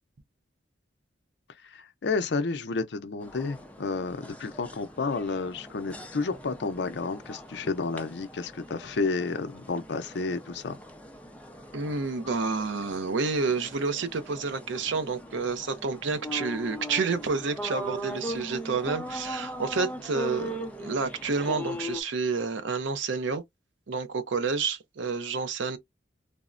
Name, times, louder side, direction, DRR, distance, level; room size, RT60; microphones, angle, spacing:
voice 1, 1.6-10.8, left 4 dB, 65° left, 0.5 m, -31 dB
sound 1, 3.2-22.0, equal, 10° left, 0.4 m, -40 dB
voice 2, 11.7-23.4 23.9-25.8, right 4 dB, 85° right, 0.6 m, -29 dB
3.4 x 2.1 x 2.4 m
head